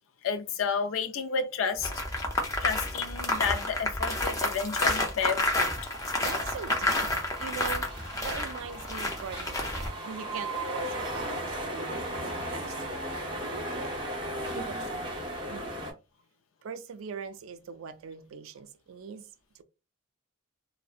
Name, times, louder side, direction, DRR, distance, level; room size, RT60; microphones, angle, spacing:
voice 1, 0.2-2.0 2.6-5.7, left 6 dB, 80° left, 0.4 m, -31 dB
sound 1, 1.8-9.9, left 2 dB, 15° left, 0.4 m, -30 dB
sound 2, 5.4-15.9, right 1 dB, 25° right, 0.6 m, -37 dB
voice 2, 6.2-14.0 14.5-15.1 15.5-15.8 16.6-19.3 19.5-19.6, right 6 dB, 80° right, 0.3 m, -42 dB
2.6 x 2.0 x 2.4 m
head